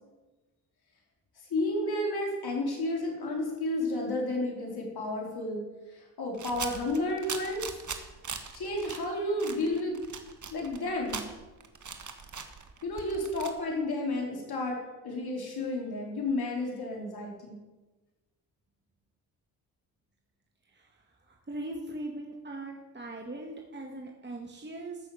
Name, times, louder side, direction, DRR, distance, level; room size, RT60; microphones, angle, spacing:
voice 1, 1.5-5.6 6.2-7.7 8.5-10.0 10.5-11.2 12.8-14.8 15.0-17.6, left 1 dB, 60° left, -1 dB, 4.6 m, -31 dB
sound 1, 6.3-9.0 9.4-13.5, right 5 dB, 45° right, 1.7 m, -40 dB
voice 2, 21.3-25.0, right 2 dB, 25° right, 1 dB, 2.0 m, -40 dB
14.0 x 6.3 x 7.8 m, 1.2 s
supercardioid pair, 55°, 42 cm